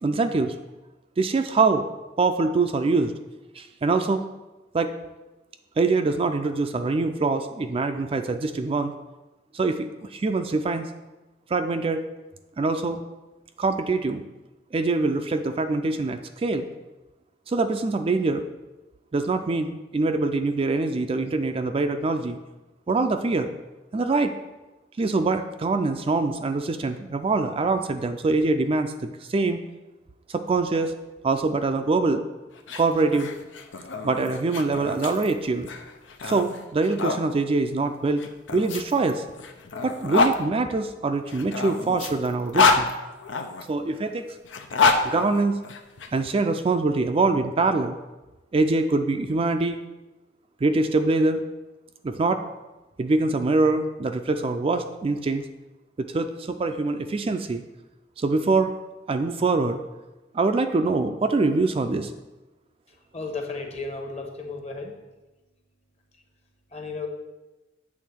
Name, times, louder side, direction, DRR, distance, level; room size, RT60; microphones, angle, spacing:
voice 1, 0.0-0.5 1.2-1.9 2.2-3.1 3.6-4.2 4.7-4.9 5.8-8.9 9.5-10.9 11.5-12.0 12.6-13.0 13.6-14.2 14.7-16.7 17.5-18.4 19.1-22.4 22.9-23.5 23.9-24.3 25.0-29.6 30.3-30.9 31.2-32.2 32.8-33.3 34.0-35.7 36.2-39.2 39.8-42.9 43.6-44.2 45.0-45.6 46.1-48.0 48.5-49.8 50.6-51.4 52.0-52.4 53.0-55.4 56.0-57.6 58.2-58.7 59.1-59.8 60.3-62.1, right 3 dB, 30° right, 7 dB, 0.3 m, -24 dB
sound 1, 32.6-37.2 38.2-40.4 41.3-43.6 44.4-46.1, left 4 dB, 85° left, 0.7 m, -26 dB
voice 2, 63.1-64.9 66.7-67.1, left 3 dB, 35° left, 3 dB, 1.1 m, -33 dB
8.4 x 3.7 x 6.1 m, 1.1 s
head